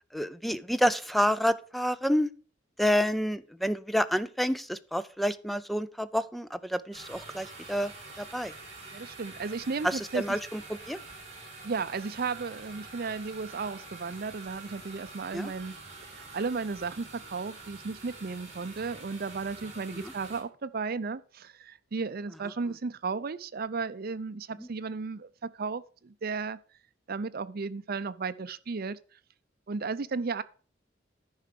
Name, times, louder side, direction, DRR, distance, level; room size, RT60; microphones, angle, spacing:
voice 1, 0.1-2.3 2.8-7.9 8.2-8.5 9.8-10.6 10.9-11.0 15.3-15.5, equal, ahead, 0.4 m, -28 dB
sound 1, 6.9-20.4, right 3 dB, 35° right, 3.5 m, -46 dB
voice 2, 8.9-10.4 11.6-15.8 16.1-26.6 27.1-29.0 29.7-30.4, right 4 dB, 55° right, 0.6 m, -34 dB
10.5 x 4.9 x 6.6 m
head